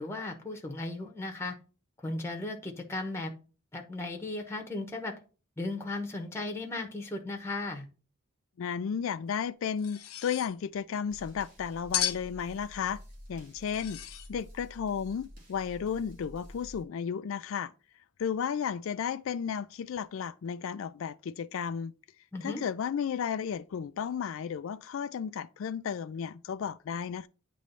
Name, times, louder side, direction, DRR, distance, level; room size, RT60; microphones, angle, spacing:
voice 1, 0.0-1.5 2.0-3.3 3.7-5.1 5.6-7.8 22.3-22.6, left 2 dB, 10° left, 1.0 m, -36 dB
voice 2, 8.6-13.0 13.3-14.0 14.3-17.7 18.2-21.9 22.4-27.3, left 7 dB, 65° left, 0.3 m, -33 dB
Knife scrape and hit, 9.8-10.5 11.9-12.3 13.6-14.3, left 11 dB, 85° left, 0.7 m, -34 dB
sound 1, 11.1-16.8, equal, 40° right, 2.1 m, -50 dB
8.7 x 3.1 x 5.4 m
head